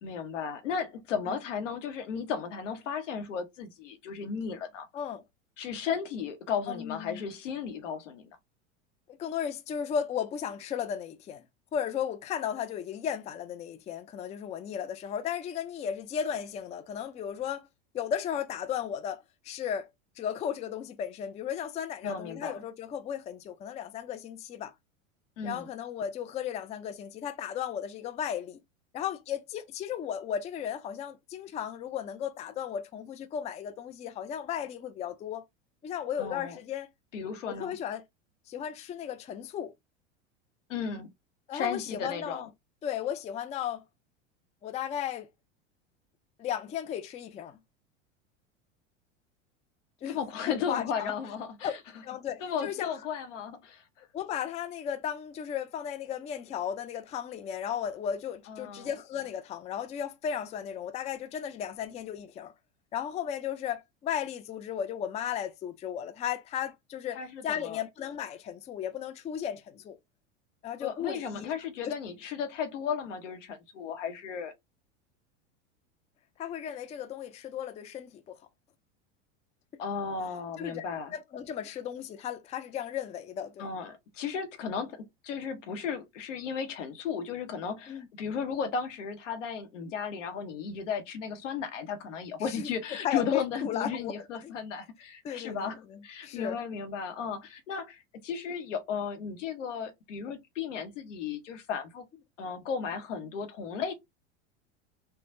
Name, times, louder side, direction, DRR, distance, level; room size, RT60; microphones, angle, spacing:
voice 1, 0.0-4.9 5.6-8.4 22.0-22.6 25.4-25.7 36.2-36.6 37.1-37.8 40.7-41.1 41.5-42.5 50.1-51.7 52.4-53.8 58.5-58.9 67.1-67.8 70.8-74.5 79.8-81.1 83.6-102.1 102.4-103.9, left 6 dB, 85° left, 0.8 m, -35 dB
voice 2, 6.7-7.2 9.2-11.4 11.7-17.7 17.9-19.9 20.2-24.7 25.4-28.6 28.9-35.4 35.8-36.9 37.5-38.0 38.5-39.7 41.5-42.5 42.8-43.8 44.6-45.3 46.4-47.6 50.0-50.2 50.5-51.1 51.6-51.7 52.0-52.9 54.1-62.5 62.9-67.2 67.4-70.0 70.6-71.5 71.8-71.9 76.4-78.4 80.6-80.8 81.1-83.7 87.9-88.1 92.5-92.7 93.0-94.1 94.4-94.5 95.2-96.6, left 9 dB, 20° left, 0.4 m, -35 dB
3.4 x 2.1 x 2.5 m
hypercardioid pair, 100°, 36 cm